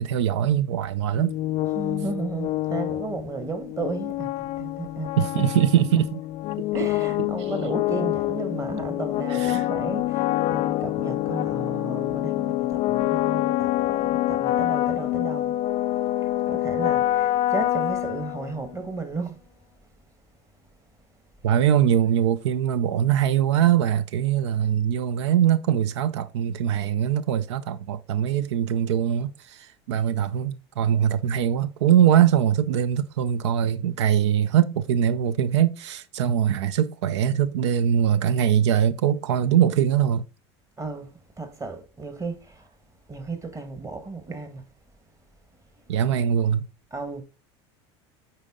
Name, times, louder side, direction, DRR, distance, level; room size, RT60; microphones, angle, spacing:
voice 1, 0.0-1.4 5.2-6.2 6.8-6.9 9.3-9.6 21.4-40.2 45.9-46.7, right 9 dB, 90° right, 0.4 m, -22 dB
sound 1, 1.1-18.8, left 15 dB, 45° left, 0.4 m, -26 dB
voice 2, 1.7-5.5 5.8-5.9 6.7-15.6 16.5-19.4 40.8-42.7 43.1-44.6 46.9-47.2, right 3 dB, 20° right, 1.4 m, -34 dB
8.9 x 4.1 x 3.7 m
supercardioid pair, 105°, 14 cm